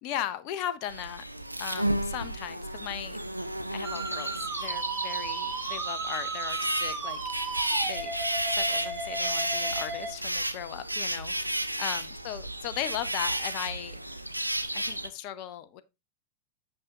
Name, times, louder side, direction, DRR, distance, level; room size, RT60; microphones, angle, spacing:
voice 1, 0.0-1.2 1.6-3.2 3.7-8.1 8.5-14.0 14.7-15.8, left 11 dB, 45° left, 0.6 m, -37 dB
sound 1, 0.9-15.1, right 1 dB, 85° right, 0.5 m, -32 dB
Musical instrument, 3.8-10.1, right 4 dB, 30° right, 1.9 m, -35 dB
8.6 x 6.4 x 2.8 m
figure-of-eight pair, 90°, 0 cm